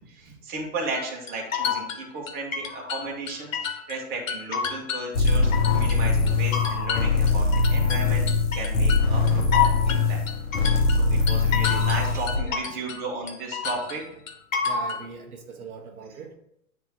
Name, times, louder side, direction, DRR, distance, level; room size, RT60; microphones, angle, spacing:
voice 1, 0.0-8.3 8.5-10.2 10.6-14.0, right 3 dB, 20° right, -2 dB, 1.7 m, -34 dB
sound 1, 0.9-4.0 4.3-6.0 6.3-13.0 13.3-15.0, left 7 dB, 65° left, 1.4 m, -29 dB
sound 2, 5.1-12.4, left 4 dB, 45° left, 1.4 m, -22 dB
voice 2, 14.6-16.3, right 5 dB, 80° right, 2 dB, 1.5 m, -41 dB
9.3 x 3.5 x 4.7 m, 0.76 s
hypercardioid pair, 135°, 43 cm